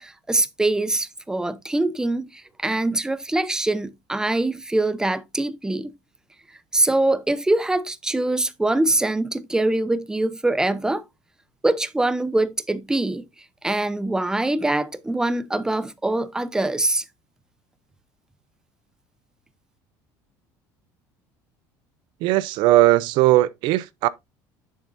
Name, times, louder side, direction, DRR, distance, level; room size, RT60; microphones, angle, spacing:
voice 1, 0.0-5.9 6.7-11.0 11.6-13.2 13.6-17.0, right 2 dB, 10° right, 0.7 m, -23 dB
voice 2, 22.2-24.1, right 16 dB, 70° right, 0.5 m, -18 dB
8.6 x 7.2 x 2.6 m
supercardioid pair, 110°, 8 cm